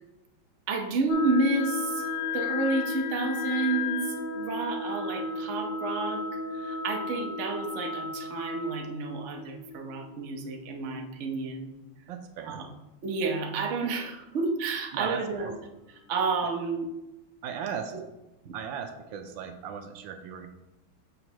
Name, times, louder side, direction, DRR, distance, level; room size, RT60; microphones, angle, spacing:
voice 1, 0.7-2.1 2.3-6.2 6.5-11.7 12.4-12.7 13.0-15.5 15.9-16.9 18.4-18.5, right 3 dB, 55° right, 2 dB, 0.8 m, -30 dB
sound 1, 1.1-10.6, left 4 dB, 85° left, 1.6 m, -34 dB
voice 2, 12.1-12.6 14.9-15.5 17.4-17.9 18.5-20.5, right 7 dB, 75° right, 7 dB, 1.3 m, -37 dB
6.6 x 5.8 x 3.0 m, 0.95 s
omnidirectional pair, 2.2 m